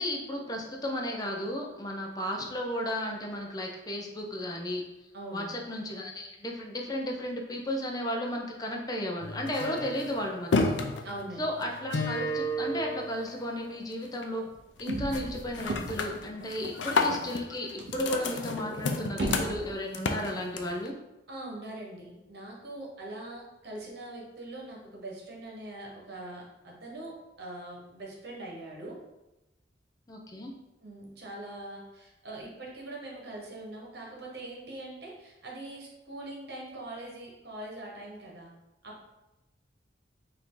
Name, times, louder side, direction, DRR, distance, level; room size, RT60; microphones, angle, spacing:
voice 1, 0.0-4.8 5.3-10.8 11.4-14.5 14.8-20.9 30.1-30.5, equal, 20° left, 1 dB, 0.6 m, -34 dB
voice 2, 5.1-5.5 11.0-11.6 21.3-29.0 30.8-38.5 38.8-39.0, right 1 dB, 60° right, -2 dB, 1.2 m, -42 dB
sound 1, 9.2-13.7 14.1-14.5 14.8-15.2 15.5-20.9, left 2 dB, 80° left, 0.5 m, -32 dB
sound 2, 14.5-16.4 16.9-17.0 17.2-17.3 17.8-19.8, right 1 dB, 85° right, 0.7 m, -36 dB
4.8 x 2.7 x 3.8 m, 0.98 s
head